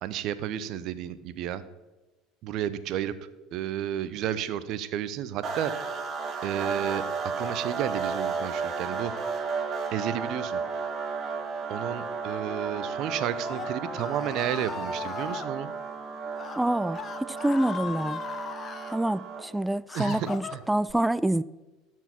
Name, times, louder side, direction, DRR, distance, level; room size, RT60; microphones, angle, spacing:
voice 1, 0.0-1.6 2.4-3.1 3.5-5.7 6.4-7.0 7.4-9.1 9.9-10.6 11.7-15.7 19.9-20.6, right 11 dB, 55° right, 0.7 m, -32 dB
sound 1, 5.4-19.6, right 5 dB, 40° right, 1.8 m, -33 dB
Screaming, 13.1-15.5 16.3-16.6 16.9-19.0 19.5-20.9, left 6 dB, 35° left, 0.8 m, -38 dB
voice 2, 16.5-17.0 17.3-18.2 18.9-21.4, right 1 dB, 5° right, 0.4 m, -26 dB
13.5 x 4.6 x 5.9 m
hypercardioid pair, 70°, 0 cm